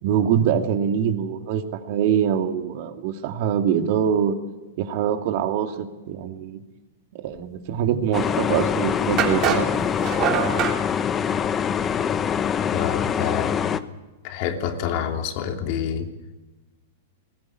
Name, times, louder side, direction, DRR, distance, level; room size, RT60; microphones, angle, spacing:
voice 1, 0.0-4.3 4.8-6.6 7.1-9.7, right 8 dB, 55° right, 6 dB, 2.4 m, -24 dB
sound 1, 8.1-13.8, left 8 dB, 25° left, 1.0 m, -24 dB
sound 2, 8.3-8.4 9.2-10.8, right 9 dB, 40° right, 3.4 m, -24 dB
voice 2, 12.7-13.7 14.2-16.1, left 9 dB, 50° left, 5 dB, 2.9 m, -27 dB
19.5 x 16.0 x 9.7 m, 1.2 s
hypercardioid pair, 120°, 0 cm